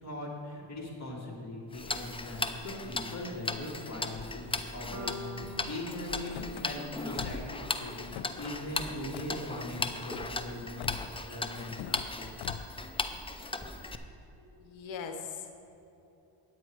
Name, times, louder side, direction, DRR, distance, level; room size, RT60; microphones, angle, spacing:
voice 1, 0.0-12.4, left 1 dB, 35° left, -3 dB, 2.5 m, -40 dB
Tick-tock, 1.7-14.0, left 3 dB, 10° left, 0.5 m, -37 dB
sound 1, 4.9-9.0, equal, 35° right, 1.1 m, -47 dB
Car / Slam, 6.2-6.7 7.1-7.6 7.9-8.5 9.1-9.4 9.8-10.3 10.8-11.2 11.7-12.1 12.4-12.8, left 9 dB, 60° left, 0.5 m, -43 dB
voice 2, 14.4-15.7, left 6 dB, 80° left, 6 dB, 1.1 m, -41 dB
10.0 x 8.6 x 4.7 m, 3.0 s
cardioid pair, 115°, 46 cm